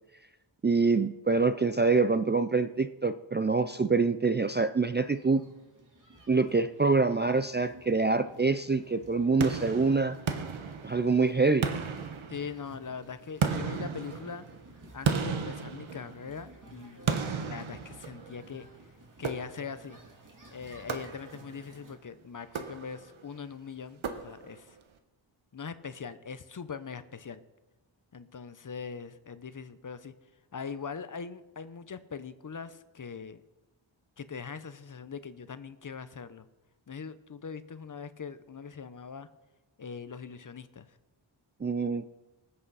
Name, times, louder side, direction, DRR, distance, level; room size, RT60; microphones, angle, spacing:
voice 1, 0.6-5.4 6.3-10.2 10.8-11.7 41.6-42.0, right 4 dB, 25° right, 10 dB, 0.4 m, -25 dB
sound 1, 5.0-22.0, right 2 dB, 40° right, 2.5 m, -54 dB
sound 2, 9.4-11.2 11.6-12.8 13.4-16.4 17.1-18.5 19.2-19.9 20.9-21.6 22.4-23.2 24.0-24.7, right 5 dB, 75° right, 1.2 m, -34 dB
voice 2, 12.3-14.4 14.9-18.7 19.2-20.0 20.5-24.8 25.5-27.4 28.1-30.1 30.5-33.4 34.2-36.5 36.9-39.3 39.8-40.9, left 6 dB, 40° left, 13 dB, 0.7 m, -41 dB
19.5 x 7.8 x 4.1 m, 1.0 s
wide cardioid pair, 80°, 49 cm